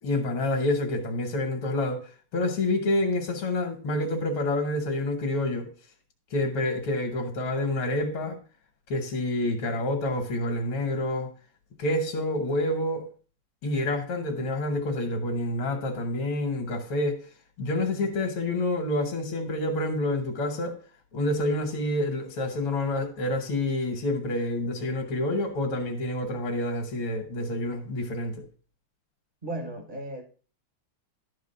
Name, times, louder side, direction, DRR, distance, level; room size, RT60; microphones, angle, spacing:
voice 1, 0.0-5.7 6.3-8.4 8.9-11.3 11.8-13.1 13.6-17.2 17.6-20.8 21.1-28.4, left 1 dB, 80° left, 2.2 m, -28 dB
voice 2, 29.4-30.2, right 1 dB, 30° right, 1.2 m, -35 dB
11.5 x 4.8 x 5.5 m
omnidirectional pair, 2.3 m